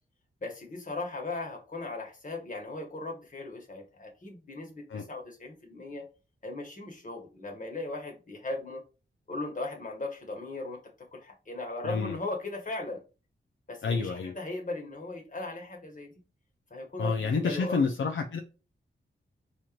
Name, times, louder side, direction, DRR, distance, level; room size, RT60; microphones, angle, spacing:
voice 1, 0.4-6.1 6.4-8.8 9.3-13.0 13.7-16.2 16.7-17.8, left 2 dB, 40° left, 1.4 m, -38 dB
voice 2, 11.8-12.2 13.8-14.3 17.0-18.4, left 4 dB, 70° left, 0.5 m, -29 dB
4.3 x 2.5 x 3.1 m
cardioid pair, 65°, 20 cm